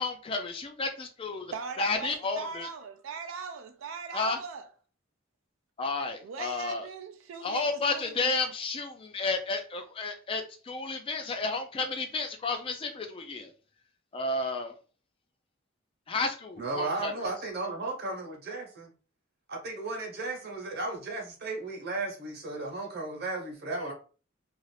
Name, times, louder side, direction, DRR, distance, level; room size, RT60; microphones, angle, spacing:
voice 1, 0.0-1.5 1.8-2.7 4.1-4.4 5.8-6.9 7.4-13.5 14.1-14.7 16.1-17.1, left 3 dB, 25° left, 0.3 m, -32 dB
voice 2, 1.5-4.7 6.2-8.3, right 5 dB, 70° right, 0.4 m, -39 dB
voice 3, 16.6-18.9 19.5-23.9, right 3 dB, 50° right, 0.9 m, -35 dB
2.5 x 2.4 x 3.2 m
head